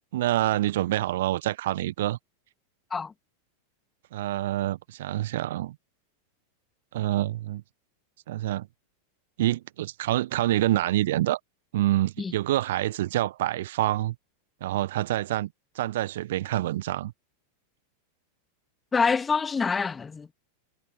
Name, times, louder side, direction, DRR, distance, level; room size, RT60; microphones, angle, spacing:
voice 1, 0.1-2.2 4.1-5.7 6.9-7.6 8.3-8.7 9.4-11.4 11.7-14.1 14.6-15.5 15.7-17.1, right 14 dB, 55° right, 1.0 m, -26 dB
voice 2, 18.9-20.3, left 5 dB, 15° left, 2.0 m, -26 dB
figure-of-eight pair, 90°, 0 cm